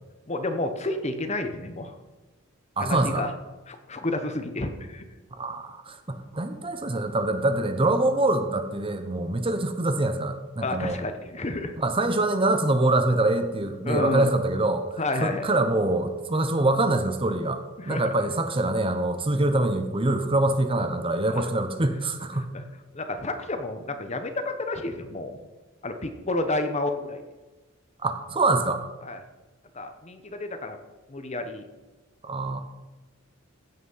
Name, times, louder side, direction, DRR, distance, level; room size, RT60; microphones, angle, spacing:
voice 1, 0.3-2.0 2.8-3.3 3.7-5.1 10.6-12.1 13.8-14.3 15.0-15.5 17.8-18.1 21.3-21.5 22.3-22.6 22.9-25.4 25.8-27.2 29.0-29.2 29.7-30.8 31.1-31.7, left 2 dB, 35° left, 7 dB, 1.0 m, -30 dB
voice 2, 2.8-3.2 5.3-11.0 11.8-22.5 28.0-28.8 32.2-32.6, right 2 dB, 25° right, 8 dB, 0.8 m, -25 dB
16.0 x 6.1 x 5.6 m, 1.2 s
head